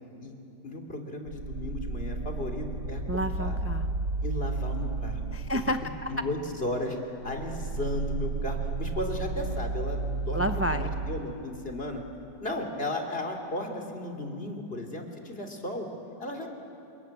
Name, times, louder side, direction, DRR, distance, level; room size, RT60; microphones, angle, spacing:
voice 1, 0.6-3.6 4.2-5.2 6.1-7.0 7.2-12.0 12.4-15.9 16.2-16.5, left 1 dB, 35° left, 2 dB, 3.2 m, -35 dB
sound 1, 1.3-6.8 7.2-11.2, right 3 dB, 80° right, 2.4 m, -33 dB
voice 2, 3.1-3.9 5.3-6.1 10.3-10.9, equal, 20° right, 7 dB, 0.4 m, -30 dB
29.5 x 21.0 x 9.6 m, 2.8 s
omnidirectional pair, 1.8 m